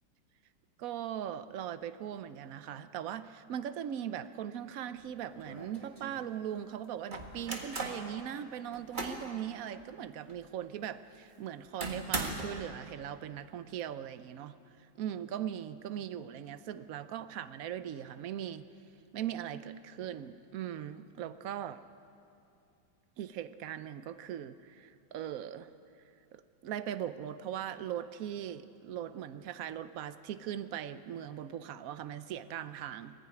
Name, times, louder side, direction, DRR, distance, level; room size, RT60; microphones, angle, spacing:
voice 1, 0.8-14.5 15.0-18.6 19.1-21.8 23.2-25.7 26.3-33.1, right 10 dB, 75° right, 12 dB, 0.7 m, -39 dB
sound 1, 5.0-5.1 5.4-6.2 7.1-8.1 8.6-9.3 9.7-9.8 10.3-10.4 11.8-12.7, right 2 dB, 25° right, 1.7 m, -38 dB
20.0 x 15.0 x 9.6 m, 2.5 s
omnidirectional pair, 2.2 m